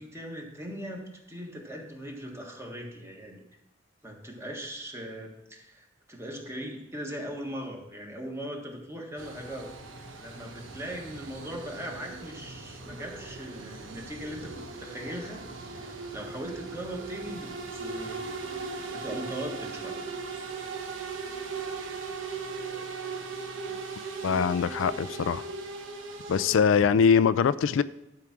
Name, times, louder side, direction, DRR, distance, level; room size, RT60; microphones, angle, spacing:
voice 1, 0.0-3.4 4.0-9.7 10.1-18.2 18.5-20.1, equal, 15° right, 0 dB, 1.6 m, -39 dB
sound 1, 9.2-26.6, right 4 dB, 75° right, 1.2 m, -38 dB
voice 2, 24.2-25.4 26.3-27.8, left 6 dB, 75° left, 15 dB, 0.4 m, -22 dB
11.5 x 4.8 x 5.9 m, 0.92 s
head